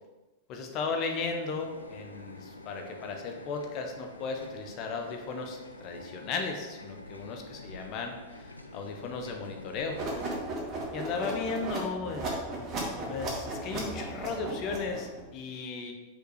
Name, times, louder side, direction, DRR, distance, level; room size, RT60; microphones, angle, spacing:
voice 1, 0.5-10.0 10.9-12.2 13.1-15.9, left 4 dB, 40° left, 3 dB, 1.1 m, -35 dB
sound 1, 1.1-10.4, left 1 dB, 80° left, 0.6 m, -47 dB
sound 2, 9.9-15.2, right 2 dB, 30° right, 2.3 m, -36 dB
6.4 x 5.4 x 5.0 m, 1.2 s
figure-of-eight pair, 90°, 0 cm